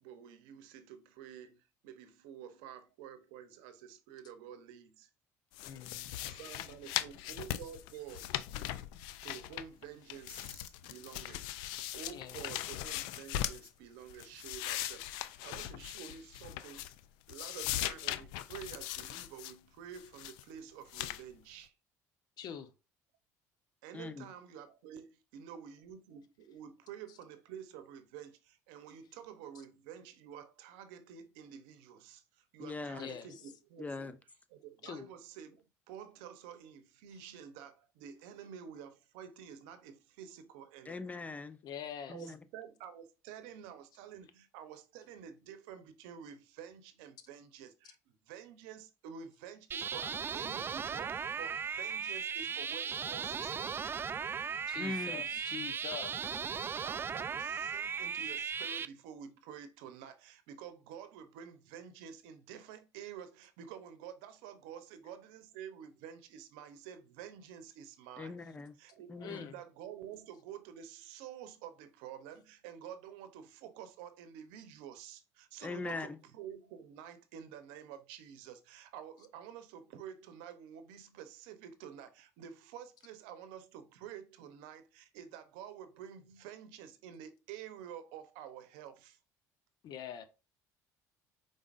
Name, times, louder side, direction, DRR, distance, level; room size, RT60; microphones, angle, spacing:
voice 1, 0.0-5.1 6.3-8.3 9.2-11.5 11.9-16.8 17.3-21.7 23.8-34.1 34.5-41.1 42.1-54.1 56.8-68.4 68.8-89.2, right 9 dB, 80° right, 0.7 m, -49 dB
sound 1, 5.5-9.8 10.1-13.7 14.1-17.0 17.3-19.5 19.9-20.4 20.9-21.2, left 13 dB, 80° left, 0.4 m, -40 dB
voice 2, 5.6-6.0 12.1-12.4 22.4-22.7 33.0-33.4 34.8-35.1 41.6-42.3 54.7-56.4 69.2-69.6 89.8-90.2, left 8 dB, 60° left, 0.8 m, -44 dB
voice 3, 23.9-24.3 32.6-33.1 33.8-34.2 40.9-41.6 42.1-42.4 54.8-55.2 68.2-68.8 69.1-69.5 75.6-76.2, left 3 dB, 20° left, 0.6 m, -41 dB
sound 2, 49.7-58.9, right 6 dB, 30° right, 0.3 m, -37 dB
5.1 x 3.9 x 2.5 m
supercardioid pair, 85°, 8 cm